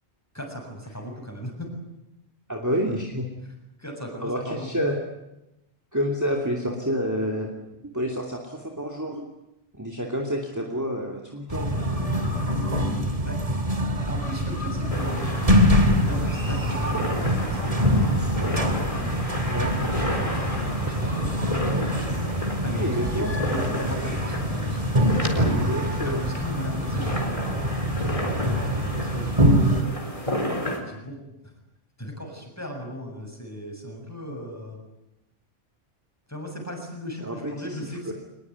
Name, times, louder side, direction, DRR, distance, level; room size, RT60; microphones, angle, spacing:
voice 1, 0.3-1.7 3.4-3.5 3.8-4.8 13.2-13.7 14.1-15.2 15.8-19.1 19.7-21.4 22.6-24.8 25.6-27.6 28.9-30.2 30.7-31.2 32.0-34.8 36.3-38.1, equal, 15° left, 1 dB, 7.4 m, -37 dB
voice 2, 2.5-3.3 4.2-5.0 5.9-7.5 7.9-9.3 9.7-12.1 19.5-19.7 22.7-23.3 25.4-26.2 37.2-37.4 37.6-38.1, equal, 15° right, 0 dB, 2.8 m, -29 dB
sound 1, 11.5-29.8, equal, 35° right, 2.6 m, -24 dB
sound 2, 14.9-30.8, equal, 30° left, 4.1 m, -32 dB
24.5 x 21.0 x 9.5 m, 0.92 s
omnidirectional pair, 1.1 m